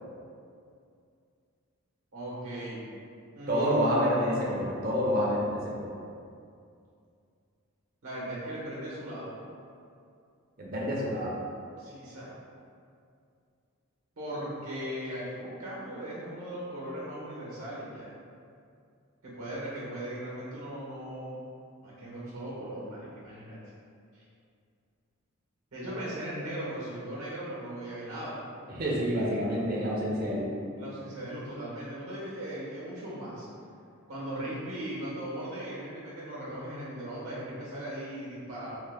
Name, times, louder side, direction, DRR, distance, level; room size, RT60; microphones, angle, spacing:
voice 1, 2.1-2.9 3.3-4.5 8.0-9.3 11.8-12.3 14.2-18.1 19.2-21.4 21.8-23.6 25.7-28.4 30.8-33.5 34.1-38.8, right 1 dB, 75° right, -7 dB, 0.9 m, -38 dB
voice 2, 3.5-5.9 10.6-11.3 28.7-30.5, equal, 40° right, -5 dB, 0.5 m, -28 dB
3.1 x 2.1 x 3.3 m, 2.4 s
head